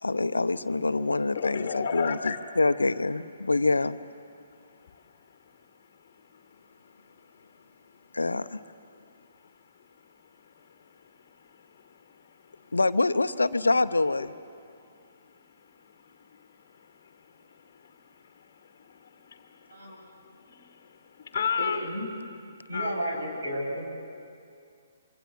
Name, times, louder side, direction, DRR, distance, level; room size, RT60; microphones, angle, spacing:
voice 1, 0.0-4.0 8.1-8.6 12.7-14.3, left 3 dB, 75° left, 12 dB, 0.8 m, -25 dB
voice 2, 1.3-2.4 4.9-5.0 6.3-6.6 7.2-7.6 10.8-10.9 11.3-12.7 14.2-14.3 15.8-16.4 16.8-20.1 20.5-21.9 22.7-23.2, left 7 dB, 40° left, 6 dB, 1.4 m, -36 dB
voice 3, 21.6-22.1 22.7-23.9, equal, 65° right, -1 dB, 7.3 m, -32 dB
26.0 x 24.0 x 7.1 m, 2.4 s
figure-of-eight pair, 130°, 0 cm